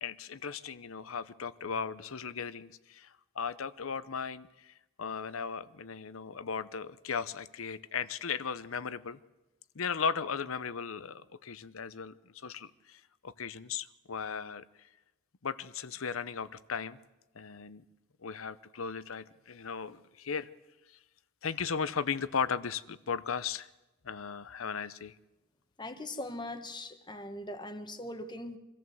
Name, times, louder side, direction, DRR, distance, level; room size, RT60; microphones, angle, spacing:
voice 1, 0.0-9.2 9.7-14.6 15.4-17.0 17.3-17.8 18.2-20.5 21.4-23.7 24.0-25.1, left 6 dB, 75° left, 16 dB, 0.8 m, -37 dB
voice 2, 25.8-28.6, left 1 dB, 20° left, 8 dB, 1.4 m, -40 dB
24.5 x 14.0 x 7.8 m, 1.0 s
head